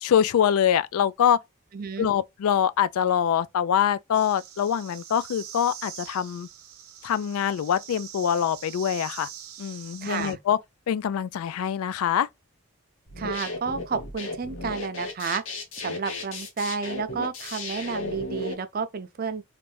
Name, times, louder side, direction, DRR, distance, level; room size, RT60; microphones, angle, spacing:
voice 1, 0.0-1.4 2.0-6.5 7.0-9.3 9.6-10.6 10.9-12.3, left 9 dB, 85° left, 0.3 m, -24 dB
voice 2, 1.7-2.1 10.0-10.4 13.2-15.4 15.8-19.4, right 5 dB, 45° right, 0.4 m, -31 dB
sound 1, 4.1-10.3, right 9 dB, 85° right, 0.7 m, -43 dB
sound 2, 13.1-18.5, left 2 dB, 65° left, 0.9 m, -34 dB
3.3 x 2.5 x 3.2 m
head